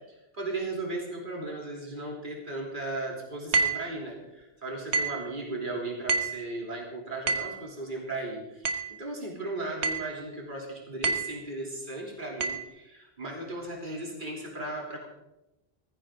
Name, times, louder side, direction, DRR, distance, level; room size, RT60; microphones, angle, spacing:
voice 1, 0.1-15.1, right 2 dB, 50° right, -2 dB, 3.4 m, -36 dB
sound 1, 3.5-3.9 4.9-5.3 6.1-6.4 7.3-7.6 8.6-9.0 9.8-10.1 11.0-11.4 12.4-12.6, right 4 dB, 85° right, 1.5 m, -28 dB
18.5 x 15.0 x 3.8 m, 0.95 s
omnidirectional pair, 1.1 m